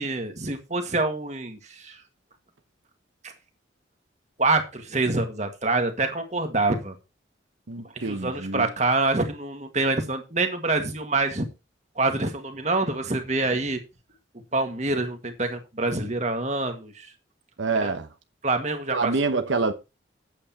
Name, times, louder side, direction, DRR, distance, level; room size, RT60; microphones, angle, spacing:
voice 1, 0.0-2.0 4.4-6.9 8.0-11.5 12.0-13.8 14.5-17.1 17.8-17.9 18.4-19.1, right 2 dB, 35° right, 1.8 m, -26 dB
voice 2, 7.7-8.7 17.6-18.1 18.9-19.7, right 3 dB, 75° right, 1.0 m, -26 dB
8.8 x 8.5 x 4.3 m
head